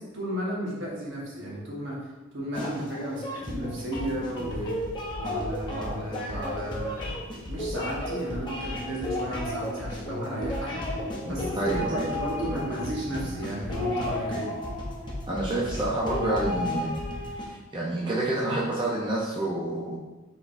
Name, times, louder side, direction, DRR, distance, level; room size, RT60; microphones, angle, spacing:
voice 1, 0.0-2.1 2.3-4.8 5.2-7.1 7.5-10.8 11.2-14.5, right 1 dB, 65° right, -4 dB, 1.3 m, -33 dB
sound 1, 2.5-17.4, left 1 dB, 20° left, 0.7 m, -33 dB
voice 2, 11.2-12.0 15.3-16.9 17.3-19.9, right 1 dB, 20° right, -6 dB, 0.5 m, -28 dB
5.0 x 3.7 x 2.6 m, 1.1 s
head